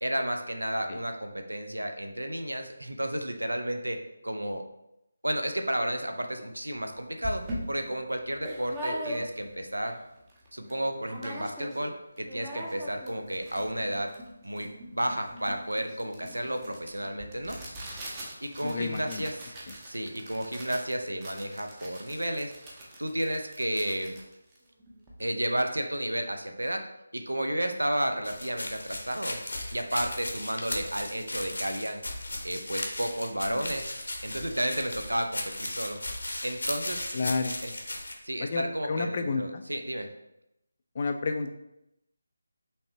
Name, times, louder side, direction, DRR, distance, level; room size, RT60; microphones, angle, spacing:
voice 1, 0.0-4.0 4.2-4.6 5.2-10.0 10.5-14.1 14.4-17.6 18.4-19.5 19.8-24.2 25.2-26.8 27.1-29.4 29.7-32.0 32.4-33.9 34.2-36.0 36.4-37.3 38.2-40.1, right 1 dB, 75° right, 5 dB, 0.6 m, -32 dB
sound 1, 6.8-6.9 7.2-9.6 10.0-10.1 10.3-10.8 11.1-11.9 12.2-25.2, equal, 15° right, 0.7 m, -41 dB
voice 2, 18.6-19.3 33.5-33.6 37.1-37.6 38.4-39.6 40.9-41.5, left 4 dB, 35° left, 7 dB, 0.4 m, -31 dB
sound 2, 28.2-38.1, left 1 dB, 65° left, 0.8 m, -36 dB
5.4 x 3.3 x 2.8 m, 0.85 s
figure-of-eight pair, 155°, 0 cm